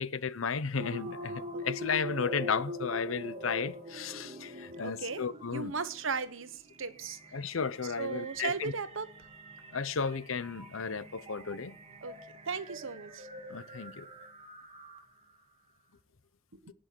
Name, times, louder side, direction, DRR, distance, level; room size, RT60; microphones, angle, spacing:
voice 1, 0.0-5.7 7.3-8.7 9.7-11.8 13.5-14.1, left 5 dB, 85° left, 0.8 m, -34 dB
sound 1, 0.8-15.3, equal, 30° right, 2.2 m, -44 dB
voice 2, 4.8-5.2 5.5-7.2 8.0-9.1 12.0-12.1 12.4-13.3 16.6-16.7, right 5 dB, 75° right, 1.2 m, -36 dB
18.5 x 6.4 x 4.6 m
head